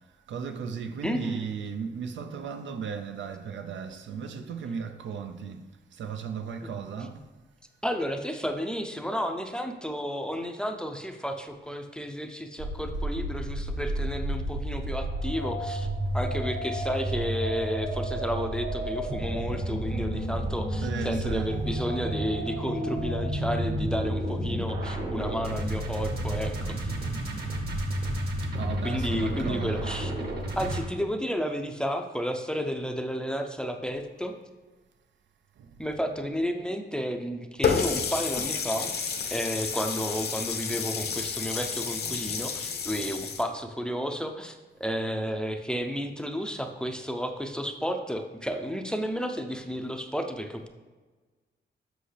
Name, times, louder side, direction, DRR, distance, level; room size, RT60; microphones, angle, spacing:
voice 1, 0.3-7.3 20.8-21.6 28.4-30.0 35.6-35.8, right 6 dB, 75° right, 0.6 m, -36 dB
voice 2, 1.0-1.5 7.8-15.9 16.1-26.9 28.8-30.1 30.6-34.3 35.8-38.9 39.3-50.7, equal, 5° left, 0.5 m, -32 dB
sound 1, 12.6-30.8, right 1 dB, 55° right, 1.3 m, -31 dB
Water tap faucet, 37.6-43.4, left 6 dB, 60° left, 0.8 m, -30 dB
7.9 x 5.4 x 3.3 m
wide cardioid pair, 130°, 19 cm